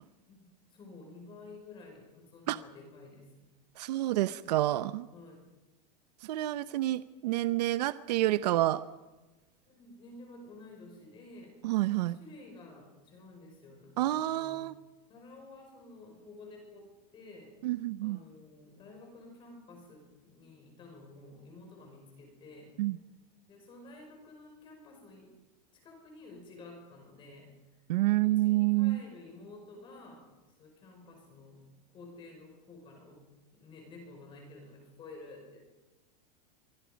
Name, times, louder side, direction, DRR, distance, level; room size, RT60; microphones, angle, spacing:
voice 1, 0.3-3.5 5.1-5.4 9.7-11.6 12.1-14.6 15.1-17.6 18.0-22.7 23.5-25.3 25.7-27.5 28.1-30.2 30.6-33.2 33.5-35.6, left 2 dB, 25° left, 2 dB, 5.6 m, -51 dB
voice 2, 3.8-5.1 6.2-8.8 11.6-12.2 14.0-14.8 17.6-18.2 22.8-23.0 27.9-29.0, right 16 dB, 75° right, 13 dB, 0.8 m, -28 dB
26.5 x 24.0 x 5.2 m, 1.1 s
supercardioid pair, 165°, 21 cm